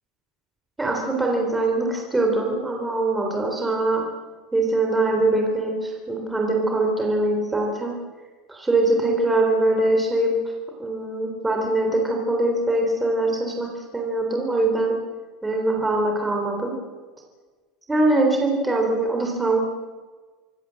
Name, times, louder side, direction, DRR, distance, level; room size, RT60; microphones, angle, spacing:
voice 1, 0.8-4.0 4.5-7.9 8.5-10.3 10.8-14.9 15.4-16.7 17.9-19.6, right 2 dB, 5° right, 0 dB, 3.6 m, -22 dB
26.0 x 21.0 x 7.7 m, 1.4 s
cardioid pair, 175°, 0 cm